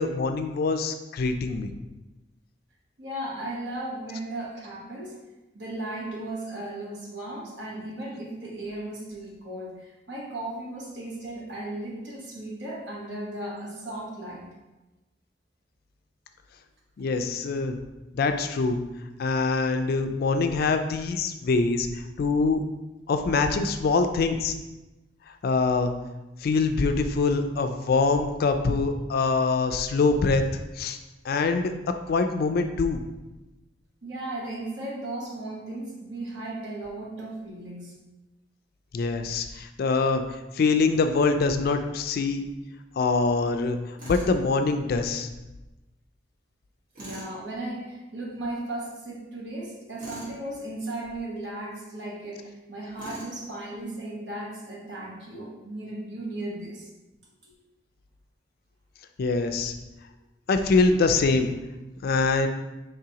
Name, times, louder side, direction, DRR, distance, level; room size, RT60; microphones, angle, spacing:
voice 1, 0.0-1.7 17.0-17.8 18.1-18.8 19.2-22.6 23.1-24.5 25.4-25.9 26.4-30.5 30.8-31.0 31.2-31.7 32.1-33.0 38.9-40.2 40.5-42.4 43.0-43.8 44.1-45.3 59.2-59.7 60.5-61.5 62.0-62.5, left 4 dB, 55° left, 7 dB, 0.3 m, -24 dB
voice 2, 3.0-5.2 5.5-14.5 34.0-37.9 47.0-56.9 57.4-57.5, right 1 dB, 65° right, -3 dB, 1.2 m, -36 dB
Tools, 44.0-44.3 46.9-47.3 50.0-50.4 53.0-53.4, right 1 dB, 45° right, 1.4 m, -41 dB
4.8 x 3.3 x 2.8 m, 1.0 s
head